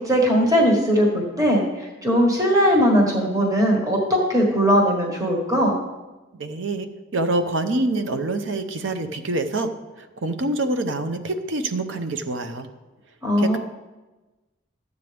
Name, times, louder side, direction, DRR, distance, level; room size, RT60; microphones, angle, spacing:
voice 1, 0.0-5.7 13.2-13.6, equal, 15° right, -1 dB, 1.5 m, -19 dB
voice 2, 6.3-6.9 7.1-12.7 13.4-13.6, right 2 dB, 65° right, 8 dB, 0.7 m, -26 dB
12.0 x 8.1 x 3.4 m, 1.1 s
head